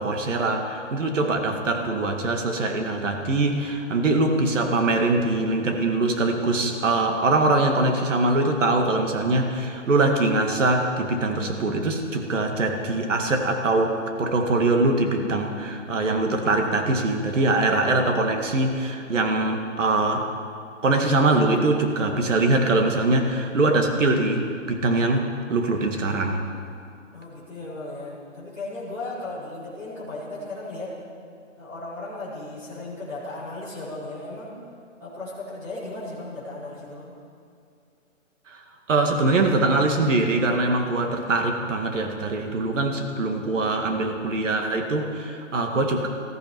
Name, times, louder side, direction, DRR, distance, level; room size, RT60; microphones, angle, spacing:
voice 1, 0.0-20.3 20.8-26.4 38.5-38.6 38.9-46.1, right 2 dB, 70° right, 4 dB, 2.1 m, -23 dB
voice 2, 27.1-31.0 31.6-34.6 35.0-37.1, left 2 dB, 5° right, -12 dB, 3.9 m, -36 dB
19.5 x 14.5 x 4.7 m, 2.5 s
hypercardioid pair, 175°, 39 cm